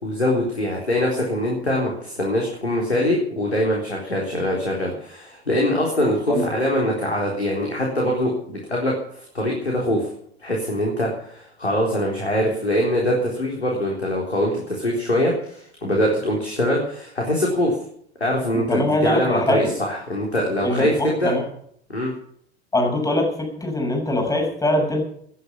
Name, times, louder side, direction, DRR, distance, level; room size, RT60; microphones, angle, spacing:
voice 1, 0.0-10.1 10.4-17.7 18.2-21.3 21.9-22.1, equal, 85° left, -2 dB, 3.9 m, -23 dB
voice 2, 18.7-19.7 20.6-21.4 22.7-25.0, left 1 dB, 10° left, 1 dB, 7.0 m, -22 dB
19.0 x 11.0 x 5.6 m, 0.64 s
figure-of-eight pair, 80°, 32 cm